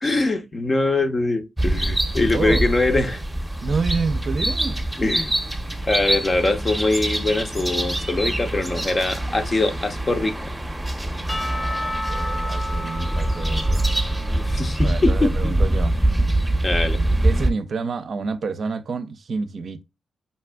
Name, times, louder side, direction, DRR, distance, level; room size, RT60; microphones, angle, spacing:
voice 1, 0.0-3.2 5.0-5.3 5.9-10.3 14.2-15.5 16.6-17.0, left 2 dB, 40° left, 0.8 m, -23 dB
sound 1, 1.6-17.5, right 1 dB, 5° right, 0.8 m, -24 dB
voice 2, 2.2-2.6 3.6-4.8 11.1-13.9 14.8-16.0 17.2-19.8, right 4 dB, 60° right, 0.5 m, -29 dB
Percussion / Church bell, 11.3-15.4, left 1 dB, 25° left, 0.4 m, -32 dB
5.4 x 2.4 x 2.3 m
supercardioid pair, 45°, 0 cm